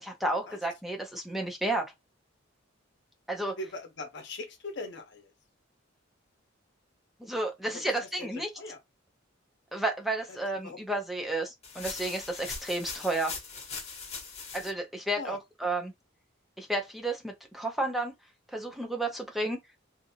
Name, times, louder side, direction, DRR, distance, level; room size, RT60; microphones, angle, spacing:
voice 1, 0.0-1.9 3.3-3.6 7.2-8.5 9.7-13.3 14.5-15.9 16.6-18.1 18.5-19.6, right 2 dB, ahead, 0.5 m, -32 dB
voice 2, 3.6-5.2 8.2-8.3 8.6-8.8 10.6-10.8 15.2-15.4, left 2 dB, 60° left, 0.8 m, -39 dB
sound 1, 11.6-14.7, left 4 dB, 35° left, 0.9 m, -40 dB
2.6 x 2.5 x 2.7 m
head